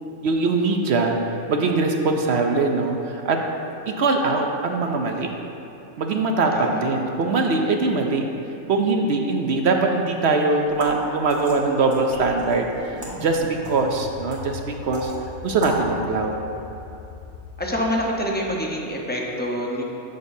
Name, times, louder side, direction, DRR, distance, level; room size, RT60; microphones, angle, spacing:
voice 1, 0.2-3.4 4.0-5.3 6.0-8.2 8.7-12.7 13.0-15.1 15.4-16.3, right 3 dB, 60° right, 3 dB, 0.7 m, -22 dB
sound 1, 10.7-15.9, right 1 dB, 85° right, 2.0 m, -37 dB
sound 2, 12.1-18.6, left 3 dB, 85° left, 2.4 m, -40 dB
voice 2, 17.6-19.8, equal, 10° left, -2 dB, 0.6 m, -26 dB
14.0 x 6.5 x 2.7 m, 2.8 s
omnidirectional pair, 1.5 m